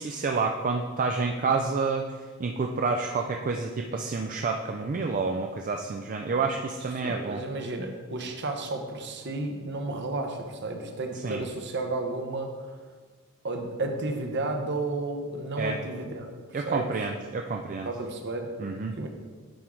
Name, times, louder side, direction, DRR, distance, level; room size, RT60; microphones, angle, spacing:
voice 1, 0.0-7.4 11.2-11.4 15.6-15.8 16.5-17.9 18.6-18.9, right 4 dB, 40° right, 3 dB, 0.4 m, -29 dB
voice 2, 7.0-12.7 13.4-16.3 16.7-16.9 17.8-18.5 19.0-19.1, right 2 dB, 55° right, 4 dB, 0.9 m, -32 dB
10.0 x 4.6 x 3.7 m, 1.5 s
head